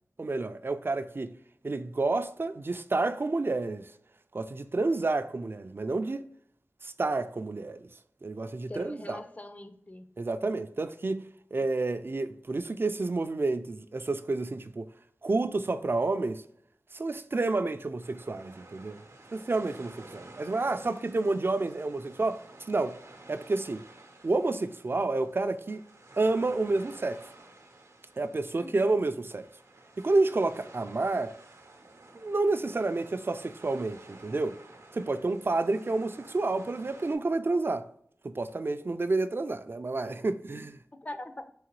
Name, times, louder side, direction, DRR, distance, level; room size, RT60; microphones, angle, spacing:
voice 1, 0.2-1.3 1.6-3.9 4.3-6.3 6.8-7.9 8.2-9.2 10.2-11.3 11.5-14.9 15.2-16.4 16.9-19.0 19.3-23.0 23.3-23.9 24.2-25.8 26.2-27.2 28.2-29.5 30.0-31.4 32.2-34.6 34.9-37.9 38.2-40.8, right 3 dB, 45° right, 0.3 m, -29 dB
voice 2, 8.7-10.1 21.6-21.7 28.6-29.0 35.7-35.9 40.6-40.7 40.9-41.5, left 1 dB, 30° left, 0.4 m, -43 dB
sound 1, 18.0-37.2, right 2 dB, 85° right, 0.7 m, -52 dB
3.8 x 3.1 x 3.0 m
wide cardioid pair, 65°, 5 cm